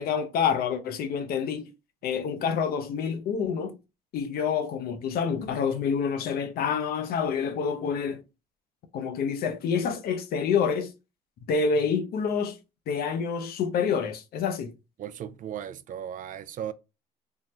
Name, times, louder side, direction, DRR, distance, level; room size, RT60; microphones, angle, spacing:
voice 1, 0.0-1.7 2.0-3.7 4.1-8.2 8.9-10.9 11.5-12.6 12.9-14.7, left 6 dB, 65° left, 0.6 m, -27 dB
voice 2, 15.0-16.7, right 10 dB, 50° right, 0.4 m, -36 dB
3.6 x 2.0 x 2.9 m
supercardioid pair, 80°, 17 cm